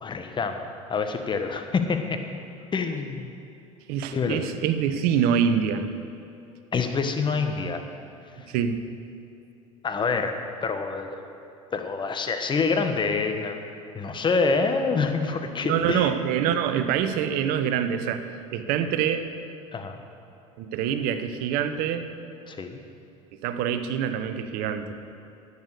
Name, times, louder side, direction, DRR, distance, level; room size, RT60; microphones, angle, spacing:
voice 1, 0.0-0.6 0.9-2.2 2.7-3.3 4.1-4.4 6.7-7.8 9.8-11.3 11.7-13.6 13.9-16.1 19.7-20.0 22.5-22.8, left 4 dB, 25° left, 6 dB, 1.2 m, -26 dB
voice 2, 3.9-5.9 8.5-8.8 15.6-18.2 18.5-19.3 20.6-22.1 23.4-24.9, right 8 dB, 60° right, 10 dB, 0.8 m, -25 dB
11.0 x 8.3 x 6.7 m, 2.6 s
hypercardioid pair, 75°, 17 cm